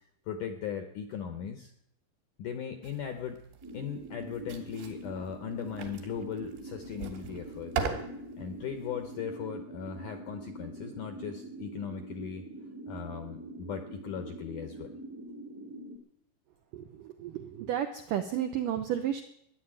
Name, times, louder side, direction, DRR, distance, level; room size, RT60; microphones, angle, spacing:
voice 1, 0.3-1.7 2.4-3.4 3.7-7.9 8.4-12.5 12.9-14.9, left 7 dB, 75° left, 7 dB, 1.8 m, -38 dB
sound 1, 2.8-9.2, right 6 dB, 70° right, 4.0 m, -41 dB
sound 2, 3.6-16.0, right 1 dB, 15° right, 0.4 m, -44 dB
voice 2, 16.7-19.2, right 10 dB, 85° right, 6 dB, 1.9 m, -32 dB
13.5 x 10.5 x 8.9 m, 0.75 s
omnidirectional pair, 5.0 m